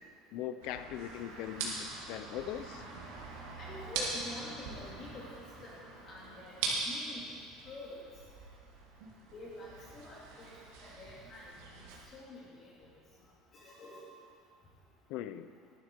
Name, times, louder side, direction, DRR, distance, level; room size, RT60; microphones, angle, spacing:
voice 1, 0.3-2.8 15.1-15.5, left 11 dB, 60° left, 11 dB, 0.6 m, -40 dB
sound 1, 0.6-12.0, right 3 dB, 90° right, 2.4 m, -42 dB
voice 2, 3.6-5.2 5.6-7.2 7.7-8.0 9.3-10.5 10.8-11.5 12.1-12.7 13.5-14.0, left 1 dB, 30° left, -5 dB, 2.5 m, -47 dB
11.5 x 11.0 x 4.6 m, 2.2 s
cardioid pair, 165°, 0 cm